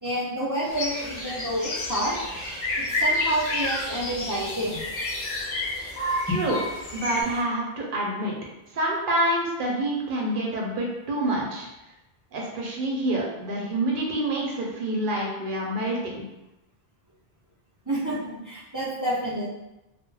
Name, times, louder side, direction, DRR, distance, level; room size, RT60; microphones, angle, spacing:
voice 1, 0.0-2.4 2.8-4.8 6.3-6.4 17.9-19.5, right 1 dB, 30° right, -8 dB, 0.3 m, -29 dB
sound 1, 0.6-7.2, left 2 dB, 65° left, 0.8 m, -30 dB
sound 2, 0.7-7.4, equal, 5° right, 0.8 m, -43 dB
voice 2, 6.3-6.6 6.9-8.3 8.7-11.7 12.3-16.2, right 1 dB, 60° right, -2 dB, 0.6 m, -27 dB
2.2 x 2.0 x 3.1 m, 0.97 s
omnidirectional pair, 1.1 m